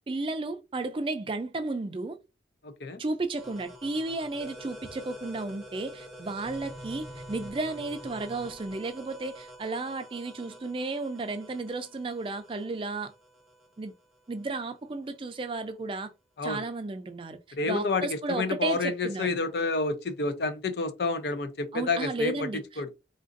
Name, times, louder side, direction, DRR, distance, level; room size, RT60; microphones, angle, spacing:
voice 1, 0.1-2.2 3.0-13.1 13.8-13.9 14.3-16.1 16.4-17.4 17.6-19.4 21.7-22.8, right 3 dB, 30° right, 0.4 m, -33 dB
voice 2, 2.6-3.0 16.4-16.6 17.6-18.1 18.4-22.4 22.8-22.9, left 3 dB, 65° left, 0.5 m, -29 dB
sound 1, 3.4-14.8, equal, ahead, 0.7 m, -47 dB
3.7 x 2.5 x 2.5 m
head